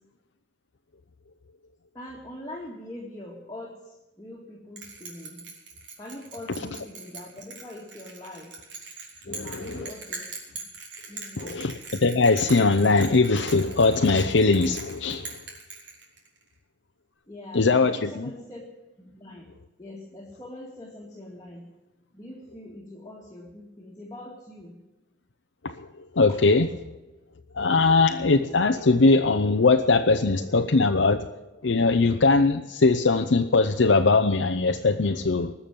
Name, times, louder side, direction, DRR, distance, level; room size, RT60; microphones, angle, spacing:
voice 1, 1.9-5.4 6.0-8.5 9.2-10.3 11.1-11.6 17.3-18.6 19.0-19.5 19.8-21.7 22.1-24.8 26.3-26.4, left 1 dB, 20° left, -3 dB, 2.1 m, -42 dB
Bell, 4.8-16.4, right 4 dB, 75° right, 4.1 m, -41 dB
voice 2, 9.3-9.9 11.4-11.7 12.0-15.3 17.5-18.3 25.6-25.9 26.2-26.7 27.5-31.3 31.6-35.5, left 3 dB, 90° left, 5 dB, 0.7 m, -21 dB
20.0 x 7.1 x 9.1 m, 1.1 s
head